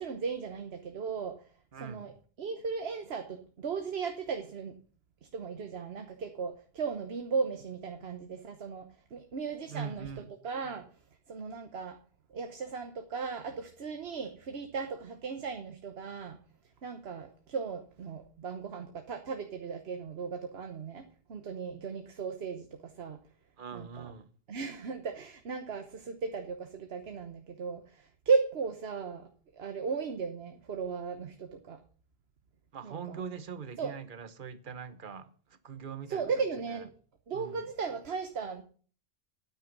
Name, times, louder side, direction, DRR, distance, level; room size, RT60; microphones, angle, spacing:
voice 1, 0.0-1.4 1.8-2.1 2.4-4.8 5.3-10.1 10.4-10.9 11.3-12.0 12.3-16.4 16.8-21.0 21.3-23.2 23.7-24.1 24.5-31.8 32.8-33.2 33.8-33.9 36.1-36.9 37.3-38.6, right 5 dB, 75° right, 1.3 m, -36 dB
voice 2, 1.7-2.1 9.7-10.3 23.6-24.3 32.7-36.3 36.7-36.8 37.3-37.6, right 6 dB, 55° right, 1.1 m, -42 dB
9.6 x 9.0 x 6.0 m
omnidirectional pair, 1.1 m